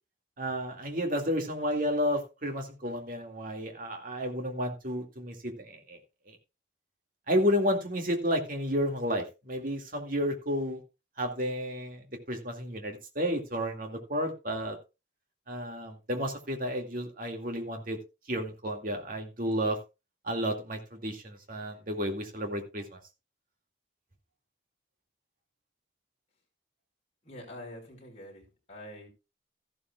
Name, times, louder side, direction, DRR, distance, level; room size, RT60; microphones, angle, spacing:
voice 1, 0.4-6.0 6.3-6.4 7.3-10.8 11.2-14.8 15.5-18.0 18.3-19.8 20.2-23.0, equal, 50° right, 2.2 m, -31 dB
voice 2, 27.2-29.1, left 1 dB, 35° left, 4.8 m, -46 dB
14.0 x 12.0 x 2.4 m
head